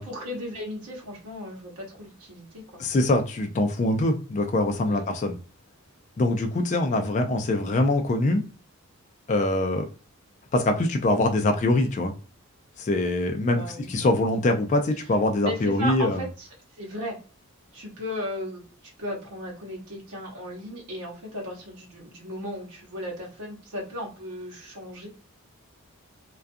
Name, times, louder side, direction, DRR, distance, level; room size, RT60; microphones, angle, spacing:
voice 1, 0.0-2.8 4.8-5.0 13.5-13.9 15.4-16.5 16.8-17.2 17.7-25.1, equal, 85° right, 0.9 m, -36 dB
voice 2, 2.8-5.4 6.2-8.4 9.3-9.9 10.5-12.1 12.8-13.6 13.9-16.2, left 2 dB, 35° left, 0.3 m, -23 dB
2.4 x 2.2 x 2.5 m
head